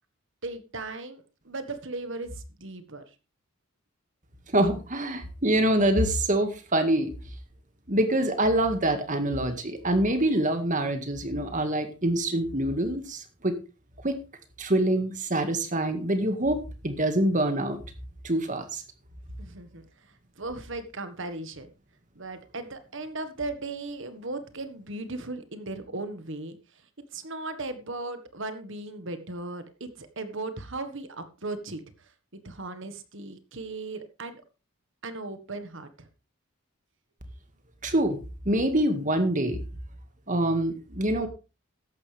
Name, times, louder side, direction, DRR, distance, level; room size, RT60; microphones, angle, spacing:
voice 1, 0.4-3.0 19.4-21.7 22.1-26.6 27.1-34.4 35.0-36.1, right 2 dB, 60° right, 10 dB, 1.6 m, -37 dB
voice 2, 4.5-7.1 7.9-13.5 14.0-14.2 14.6-17.8 18.2-18.8 37.8-38.2 38.5-39.6 40.3-41.3, right 1 dB, 35° right, 8 dB, 2.0 m, -25 dB
14.0 x 11.0 x 3.5 m, 0.31 s
head